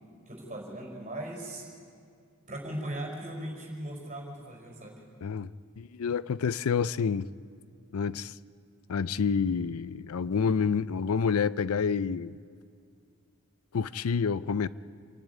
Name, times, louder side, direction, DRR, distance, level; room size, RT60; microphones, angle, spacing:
voice 1, 0.2-1.7 2.5-5.0, right 1 dB, 35° right, 0 dB, 5.1 m, -38 dB
voice 2, 5.2-5.5 5.8-7.3 7.9-8.3 8.9-12.4 13.7-14.7, left 6 dB, 85° left, 17 dB, 0.5 m, -28 dB
27.0 x 11.0 x 9.5 m, 2.2 s
head